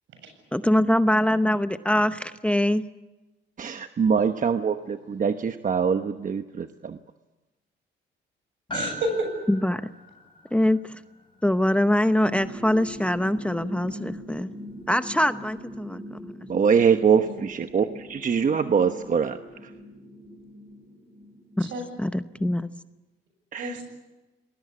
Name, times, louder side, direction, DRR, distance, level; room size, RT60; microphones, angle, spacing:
voice 1, 0.5-2.8 9.5-9.9 10.5-11.0 11.4-14.5 14.9-16.5 21.6-21.7 22.0-22.7, left 1 dB, 5° left, 10 dB, 0.8 m, -23 dB
voice 2, 3.6-7.0 16.5-19.4 23.5-23.8, right 6 dB, 40° right, 8 dB, 1.1 m, -23 dB
Piano, 8.7-13.3 13.5-13.6, left 2 dB, 25° left, 7.3 m, -40 dB
voice 3, 8.7-9.3 17.1-17.4 21.6-21.8 23.6-23.8, right 1 dB, 75° right, 6 dB, 7.8 m, -30 dB
sound 1, 12.2-22.7, equal, 15° right, 3.2 m, -42 dB
27.5 x 20.5 x 8.4 m, 1.1 s
cardioid pair, 90°, 20 cm